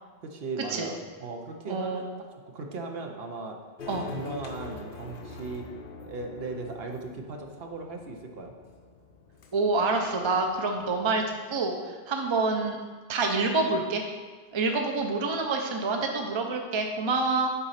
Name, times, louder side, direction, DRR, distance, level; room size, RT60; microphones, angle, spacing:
voice 1, 0.2-2.1 2.5-3.6 3.9-5.7 6.0-8.5, right 3 dB, 60° right, 3 dB, 1.0 m, -37 dB
voice 2, 1.7-2.0 3.9-4.1 9.5-12.8 13.1-14.0 14.5-17.5, right 3 dB, 30° right, 3 dB, 0.7 m, -27 dB
sound 1, 3.8-11.3, left 3 dB, 55° left, 0.9 m, -45 dB
8.2 x 4.1 x 5.7 m, 1.4 s
omnidirectional pair, 1.1 m